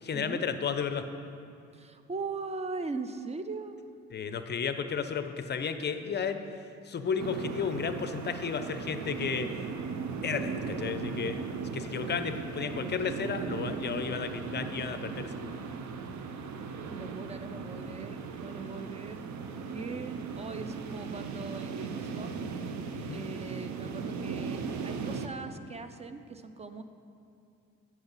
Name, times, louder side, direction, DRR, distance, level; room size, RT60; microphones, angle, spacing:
voice 1, 0.0-1.0 4.1-6.4 6.9-9.7 10.2-11.4 11.7-15.5 23.1-23.2, left 6 dB, 35° left, 9 dB, 0.5 m, -33 dB
voice 2, 1.7-3.8 16.9-19.3 19.7-22.4 23.1-26.8, right 4 dB, 20° right, 9 dB, 0.4 m, -40 dB
sound 1, 7.2-25.3, right 5 dB, 70° right, 0.6 m, -37 dB
8.7 x 6.0 x 4.0 m, 2.5 s
cardioid pair, 90°, 30 cm